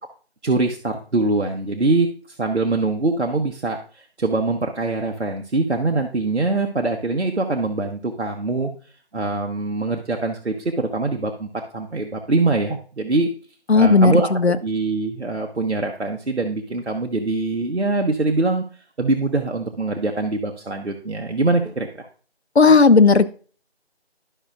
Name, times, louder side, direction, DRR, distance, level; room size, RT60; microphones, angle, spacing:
voice 1, 0.4-8.7 9.1-13.3 13.7-14.3 14.6-18.6 19.0-22.1, right 3 dB, 80° right, 2 dB, 1.1 m, -23 dB
voice 2, 13.7-14.6 22.6-23.2, left 4 dB, 75° left, 12 dB, 0.7 m, -13 dB
12.0 x 5.6 x 2.4 m, 0.40 s
figure-of-eight pair, 180°, 33 cm